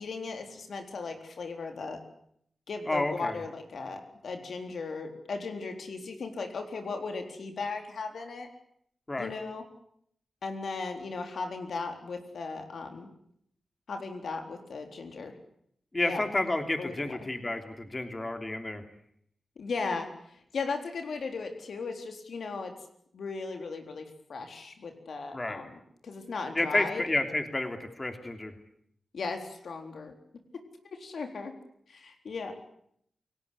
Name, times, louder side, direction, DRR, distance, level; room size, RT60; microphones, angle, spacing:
voice 1, 0.0-2.0 2.7-8.5 9.2-9.6 10.4-13.1 13.9-15.3 16.0-16.3 16.8-17.2 19.6-22.8 23.1-25.7 26.0-27.0 29.1-30.1 30.9-31.6 31.9-32.5, left 4 dB, 75° left, 5 dB, 3.8 m, -37 dB
voice 2, 2.9-3.4 9.1-9.3 15.9-18.8 25.3-25.6 26.5-28.5, left 2 dB, 25° left, 6 dB, 3.3 m, -30 dB
29.0 x 18.0 x 8.4 m, 0.71 s
cardioid pair, 60°, 0 cm